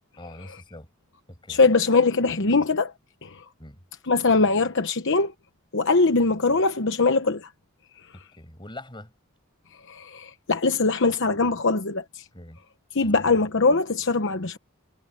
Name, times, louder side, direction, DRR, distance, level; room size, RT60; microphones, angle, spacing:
voice 1, 0.2-0.9 1.3-1.6 3.6-3.8 8.1-9.1 12.3-12.6 13.0-13.2, left 1 dB, 20° left, 6.2 m, -43 dB
voice 2, 1.5-2.9 3.2-3.4 4.1-5.3 5.7-7.5 9.9-12.2 12.9-14.6, left 3 dB, 60° left, 1.1 m, -22 dB
head